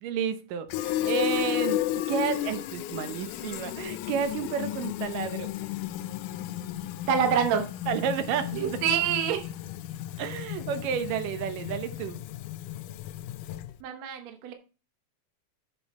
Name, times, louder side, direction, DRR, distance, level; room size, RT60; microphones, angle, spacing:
voice 1, 0.0-5.5 7.9-9.0 10.2-12.2, right 8 dB, 85° right, 10 dB, 2.6 m, -31 dB
Fill (with liquid), 0.7-13.8, left 13 dB, 80° left, 2.0 m, -33 dB
voice 2, 7.1-7.7 8.6-9.4 13.8-14.5, right 8 dB, 65° right, 5 dB, 2.1 m, -26 dB
7.8 x 6.9 x 4.1 m, 0.32 s
omnidirectional pair, 3.7 m